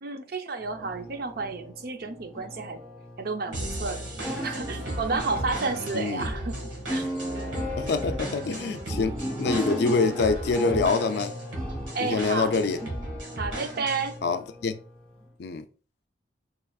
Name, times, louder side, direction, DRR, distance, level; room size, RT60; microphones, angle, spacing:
voice 1, 0.0-2.8 3.2-6.6 6.9-7.0 11.9-12.5 13.4-14.2, right 4 dB, 55° right, 0.5 m, -31 dB
sound 1, 0.6-15.3, equal, 5° left, 0.7 m, -37 dB
sound 2, 3.5-14.2, right 1 dB, 90° right, 1.4 m, -36 dB
voice 2, 5.9-6.3 7.8-11.3 12.0-12.8 14.2-14.8 15.4-15.6, left 4 dB, 60° left, 0.4 m, -26 dB
4.7 x 3.0 x 2.3 m
head